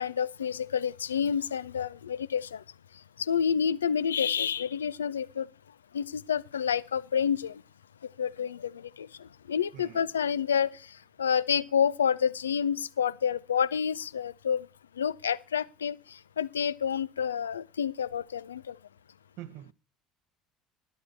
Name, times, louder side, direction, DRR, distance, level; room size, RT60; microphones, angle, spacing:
voice 1, 0.0-2.6 3.2-5.5 5.9-7.6 8.2-9.1 9.5-10.7 11.2-14.7 15.0-16.0 16.4-18.8, left 7 dB, 80° left, 0.5 m, -29 dB
voice 2, 9.7-10.0 19.4-19.7, right 13 dB, 60° right, 0.8 m, -44 dB
11.0 x 11.0 x 4.4 m
figure-of-eight pair, 65°, 0 cm